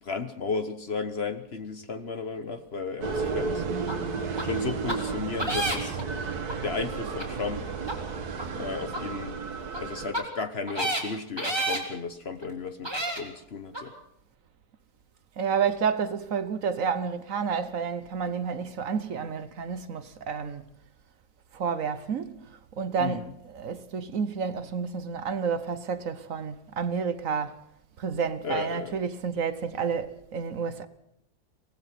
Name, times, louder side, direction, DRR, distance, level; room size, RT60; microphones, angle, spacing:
voice 1, 0.0-3.6 4.4-6.0 6.6-7.7 8.6-9.4 9.8-13.9 23.0-23.3 28.4-29.0, left 4 dB, 45° left, 1.2 m, -34 dB
sound 1, 3.0-10.1, right 5 dB, 75° right, 2.0 m, -32 dB
sound 2, 3.9-4.0 4.4-4.5 4.9-5.0 5.4-6.0 6.5-6.6 7.2-7.3 7.8-7.9 8.4-8.5 8.9-9.0 9.7-9.8 10.1-10.2 10.7-11.0 11.4-11.8 12.4-12.5 12.8-13.2 13.7-13.8, right 1 dB, 15° right, 3.4 m, -29 dB
voice 2, 15.4-20.6 21.5-27.6 28.0-30.9, right 6 dB, 60° right, 1.3 m, -30 dB
23.5 x 18.0 x 6.0 m
omnidirectional pair, 1.7 m